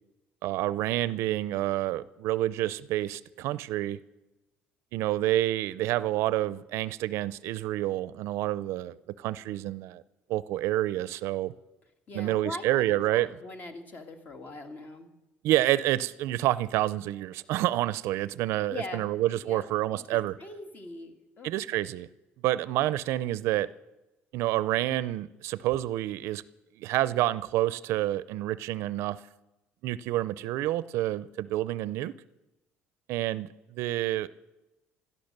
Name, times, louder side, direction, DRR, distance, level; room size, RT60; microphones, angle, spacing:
voice 1, 0.4-4.0 4.9-10.0 10.3-11.5 12.1-13.3 15.4-20.3 21.4-22.1 22.4-23.7 24.3-26.4 26.8-29.2 29.8-32.1 33.1-34.3, right 15 dB, 75° right, 0.5 m, -28 dB
voice 2, 12.1-15.1 18.7-19.7 20.4-21.5, left 2 dB, 40° left, 2.1 m, -41 dB
16.0 x 12.5 x 6.7 m
cardioid pair, 115°, 5 cm